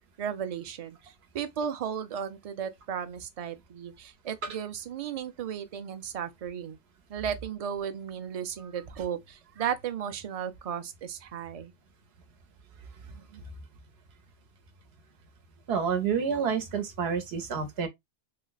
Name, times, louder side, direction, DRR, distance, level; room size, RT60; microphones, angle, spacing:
voice 1, 0.2-6.8 7.1-11.7, right 8 dB, 50° right, 0.5 m, -35 dB
voice 2, 15.7-17.9, right 6 dB, 85° right, 1.0 m, -29 dB
3.2 x 2.1 x 3.9 m
omnidirectional pair, 1.0 m